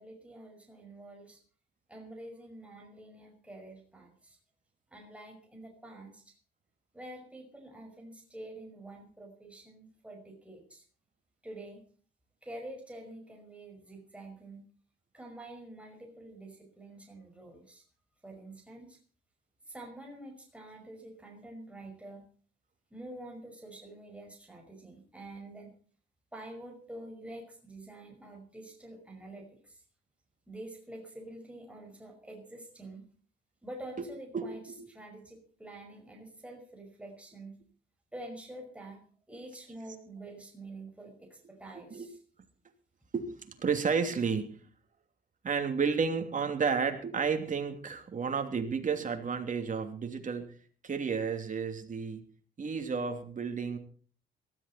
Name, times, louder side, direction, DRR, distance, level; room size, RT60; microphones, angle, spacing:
voice 1, 0.0-1.4 1.9-4.4 4.9-6.3 6.9-10.8 11.4-11.8 12.4-14.6 15.1-17.8 18.2-19.0 19.7-22.3 22.9-25.7 26.3-29.8 30.5-33.0 33.6-37.6 38.1-42.2, right 1 dB, 5° right, 1 dB, 5.4 m, -47 dB
voice 2, 34.3-34.8 41.8-42.1 43.1-44.7 45.4-50.5 50.8-52.2 52.6-53.8, right 5 dB, 40° right, 5 dB, 3.0 m, -32 dB
18.5 x 14.0 x 4.3 m, 0.43 s
cardioid pair, 90°, 20 cm